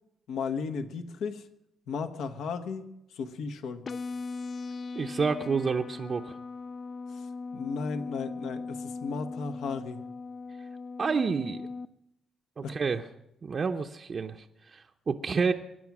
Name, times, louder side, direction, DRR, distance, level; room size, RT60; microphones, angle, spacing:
voice 1, 0.3-1.4 1.9-2.9 3.1-3.8 7.5-10.0 12.6-12.8, left 5 dB, 80° left, 8 dB, 1.3 m, -34 dB
sound 1, 3.9-11.9, left 4 dB, 40° left, 0.5 m, -39 dB
voice 2, 5.0-6.4 11.0-11.7 12.6-13.1 13.4-15.5, right 5 dB, 40° right, 4 dB, 0.7 m, -29 dB
23.0 x 9.6 x 6.1 m, 0.83 s
cardioid pair, 90°, 0 cm